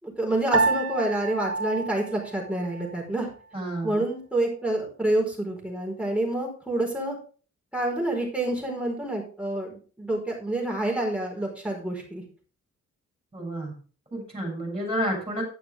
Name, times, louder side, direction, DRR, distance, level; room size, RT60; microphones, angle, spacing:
voice 1, 0.0-3.3 3.8-7.2 7.7-12.2, right 1 dB, 5° right, -1 dB, 4.6 m, -28 dB
Piano, 0.5-3.1, right 4 dB, 50° right, 1.2 m, -28 dB
voice 2, 3.5-4.0 13.3-13.7 14.1-15.4, equal, 20° right, 1 dB, 7.0 m, -30 dB
11.5 x 10.5 x 3.5 m, 0.38 s
wide cardioid pair, 150°, 29 cm